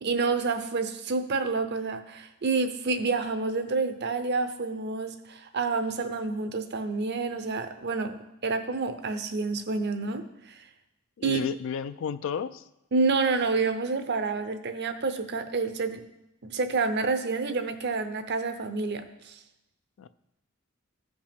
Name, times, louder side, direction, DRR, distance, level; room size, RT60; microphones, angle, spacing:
voice 1, 0.0-8.1 8.4-10.6 11.2-11.4 12.9-16.0 16.4-19.4, right 4 dB, 55° right, 9 dB, 0.7 m, -28 dB
voice 2, 11.2-12.6 20.0-20.1, left 6 dB, 65° left, 13 dB, 0.4 m, -32 dB
15.0 x 5.1 x 3.6 m, 0.89 s
head